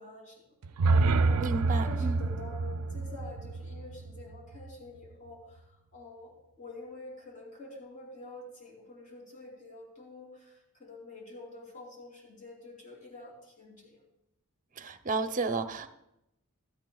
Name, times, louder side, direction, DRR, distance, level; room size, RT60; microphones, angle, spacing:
voice 1, 0.0-14.0, left 2 dB, 35° left, -1 dB, 3.2 m, -48 dB
sound 1, 0.6-4.7, right 3 dB, 80° right, 0.4 m, -28 dB
voice 2, 1.4-2.2 14.8-15.9, right 3 dB, 35° right, 9 dB, 0.7 m, -32 dB
15.5 x 12.5 x 2.3 m, 0.85 s
head